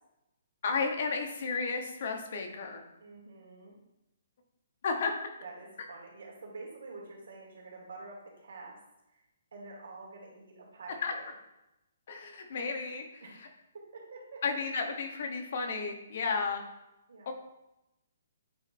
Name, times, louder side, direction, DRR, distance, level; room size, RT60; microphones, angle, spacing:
voice 1, 0.6-2.9 4.8-5.1 11.0-11.1 12.1-13.5 14.4-16.6 17.3-17.4, left 4 dB, 40° left, 4 dB, 0.9 m, -33 dB
voice 2, 3.0-3.7 5.4-8.8 9.1-9.2 9.5-11.3 13.2-13.4 13.7-14.4 17.1-17.3, right 3 dB, 85° right, -2 dB, 2.4 m, -47 dB
8.6 x 3.2 x 4.2 m, 0.92 s
hypercardioid pair, 175°, 0 cm